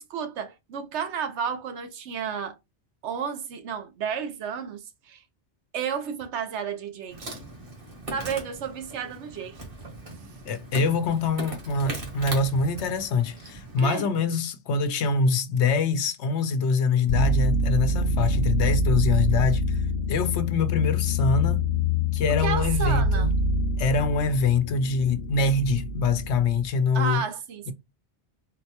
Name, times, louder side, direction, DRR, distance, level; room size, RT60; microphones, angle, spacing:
voice 1, 0.0-2.6 3.0-5.2 5.7-7.4 8.1-9.6 13.8-14.1 22.3-23.3 26.9-27.7, right 7 dB, 80° right, 1.0 m, -32 dB
Insect, 7.1-13.9, right 1 dB, 55° right, 1.3 m, -39 dB
voice 2, 10.4-19.8 20.1-21.6 22.1-23.3 23.8-27.2 27.7-27.8, left 4 dB, 80° left, 0.9 m, -24 dB
sound 1, 17.1-26.7, left 1 dB, 60° left, 0.6 m, -25 dB
4.0 x 2.1 x 2.8 m
omnidirectional pair, 1.2 m